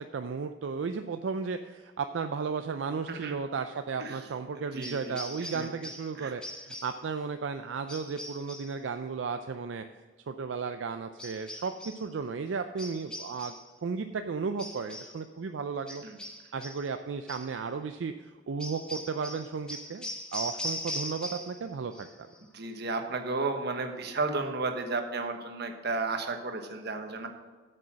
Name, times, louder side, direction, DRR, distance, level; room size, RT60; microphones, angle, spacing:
voice 1, 0.1-9.8 10.3-13.6 13.8-16.0 16.5-18.1 18.5-22.1, right 5 dB, 80° right, 8 dB, 0.4 m, -34 dB
voice 2, 4.7-5.2 5.5-5.7 6.1-6.3 16.0-16.2 22.5-27.3, right 3 dB, 60° right, 5 dB, 1.1 m, -33 dB
sound 1, 4.8-6.1 6.4-7.0 7.9-8.8 11.2-12.1 12.8-13.7 14.6-15.2 15.9-16.9 17.3-17.5 18.6-21.6 21.9-22.4, left 1 dB, 5° left, 1.1 m, -40 dB
8.5 x 6.7 x 6.2 m, 1.4 s
head